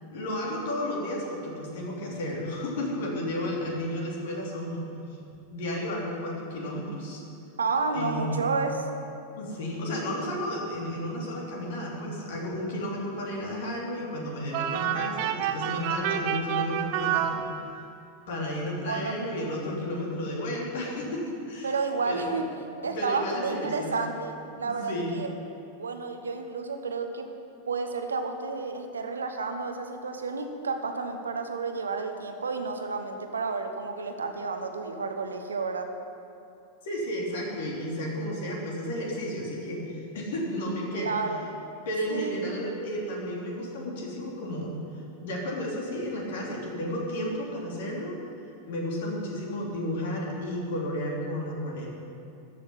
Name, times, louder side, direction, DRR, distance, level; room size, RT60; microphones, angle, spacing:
voice 1, 0.0-4.9 5.5-7.2 7.9-8.4 9.3-17.4 18.3-21.7 22.0-22.3 22.8-23.9 24.6-25.2 36.8-41.2 41.8-44.7 45.2-48.2 48.7-51.9, equal, 55° left, -2 dB, 3.2 m, -32 dB
voice 2, 7.6-8.8 18.8-19.1 21.6-22.5 22.8-25.3 25.8-27.3 27.7-35.9 40.9-41.5 42.1-42.3, right 4 dB, 70° right, 5 dB, 1.1 m, -31 dB
sound 1, 14.5-18.0, right 10 dB, 45° right, 0.8 m, -29 dB
14.0 x 6.4 x 9.9 m, 2.6 s
figure-of-eight pair, 90°, 0 cm